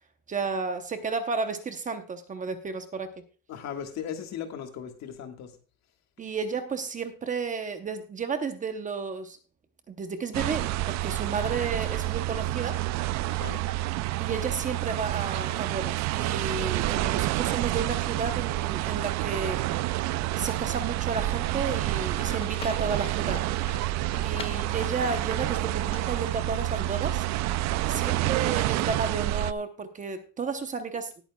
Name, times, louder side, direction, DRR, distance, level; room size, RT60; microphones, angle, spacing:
voice 1, 0.3-3.1 6.2-9.4 9.9-12.8 14.2-19.6 19.9-23.5 24.2-27.3 27.8-31.1, right 5 dB, 25° right, 8 dB, 0.8 m, -32 dB
voice 2, 3.5-5.5 13.3-13.6 24.2-24.7 27.8-28.2, left 8 dB, 55° left, 5 dB, 1.7 m, -38 dB
sound 1, 10.3-29.5, right 16 dB, 55° right, 0.4 m, -28 dB
Livestock farm animals working animals, 21.9-26.8, left 6 dB, 20° left, 0.4 m, -45 dB
19.0 x 8.9 x 2.3 m, 0.36 s
cardioid pair, 170°, 32 cm